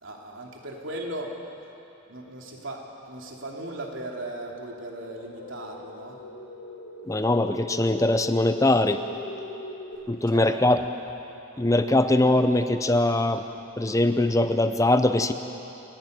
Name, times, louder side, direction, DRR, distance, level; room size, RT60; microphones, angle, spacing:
voice 1, 0.0-1.3 2.1-6.2 10.3-10.6, right 1 dB, 70° right, 0 dB, 3.1 m, -37 dB
sound 1, 5.0-10.0, left 2 dB, 80° left, 3.3 m, -40 dB
voice 2, 7.1-9.0 10.1-10.8 11.6-13.4 13.8-15.3, left 1 dB, 15° left, 9 dB, 0.6 m, -22 dB
29.5 x 12.0 x 9.5 m, 2.9 s
head